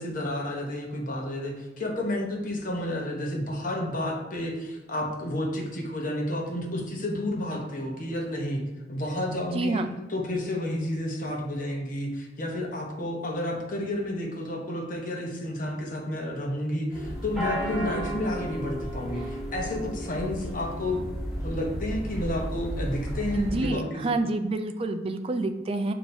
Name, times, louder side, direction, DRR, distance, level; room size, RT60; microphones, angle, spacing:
voice 1, 0.0-8.6 8.9-9.8 10.1-21.0 21.4-24.2, left 1 dB, 45° left, 0 dB, 0.9 m, -31 dB
voice 2, 9.5-9.9 23.4-25.9, right 2 dB, 30° right, 7 dB, 0.3 m, -28 dB
sound 1, 16.9-23.6, equal, ahead, 1.1 m, -33 dB
7.0 x 2.8 x 2.6 m, 1.0 s
head